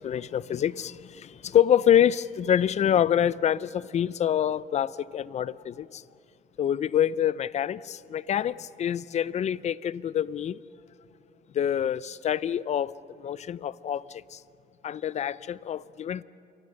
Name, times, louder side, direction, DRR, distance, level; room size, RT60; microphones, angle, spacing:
voice 1, 0.0-6.0 6.6-10.6 11.5-14.4 14.8-16.2, left 10 dB, 40° left, 0.5 m, -26 dB
27.5 x 24.0 x 6.4 m
cardioid pair, 110°, 17 cm